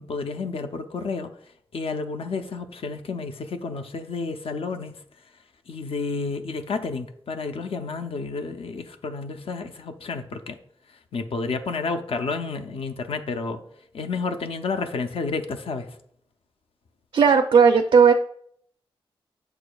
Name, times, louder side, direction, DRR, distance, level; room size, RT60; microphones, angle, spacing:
voice 1, 0.0-1.3 1.7-4.9 5.7-10.6 10.9-13.6 13.9-16.0, left 4 dB, 75° left, 0.5 m, -30 dB
voice 2, 17.1-18.1, right 6 dB, 70° right, 0.4 m, -15 dB
7.8 x 6.6 x 2.3 m
wide cardioid pair, 100°, 10 cm